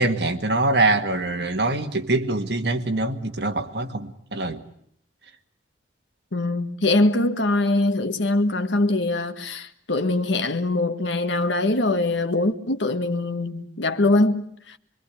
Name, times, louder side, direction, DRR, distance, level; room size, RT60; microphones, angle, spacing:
voice 1, 0.0-4.6, right 2 dB, 65° right, 1.9 m, -24 dB
voice 2, 6.3-14.8, left 2 dB, 85° left, 1.6 m, -23 dB
25.5 x 23.0 x 8.3 m
head